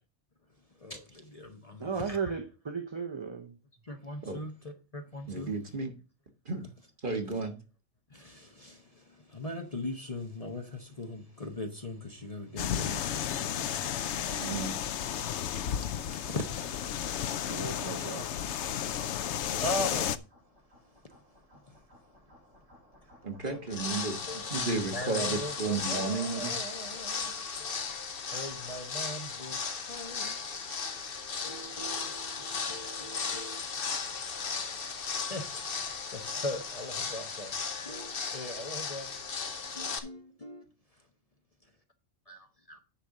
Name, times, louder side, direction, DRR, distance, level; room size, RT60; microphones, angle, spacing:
voice 1, 0.8-2.3 3.8-5.5 8.1-14.7 16.0-18.8 19.3-20.2 21.7-21.8 23.4-24.5 24.8-27.9 28.3-30.6 31.4-34.2 35.1-35.4 35.8-37.5 37.8-39.1 39.7-40.6 42.3-42.4 42.7-42.8, left 1 dB, 30° left, 1.1 m, -41 dB
voice 2, 1.8-3.5 14.2-14.7 17.4-18.3, right 5 dB, 25° right, 0.7 m, -36 dB
voice 3, 5.3-5.9 6.4-6.6 7.0-7.6 14.4-14.8 23.2-26.5, right 4 dB, 40° right, 1.7 m, -33 dB
sound 1, 12.6-20.2, left 9 dB, 70° left, 0.9 m, -33 dB
sound 2, 19.5-25.9, left 1 dB, 75° right, 5.8 m, -59 dB
sound 3, 23.7-40.0, left 5 dB, 50° left, 1.1 m, -36 dB
10.0 x 4.4 x 6.4 m
omnidirectional pair, 1.3 m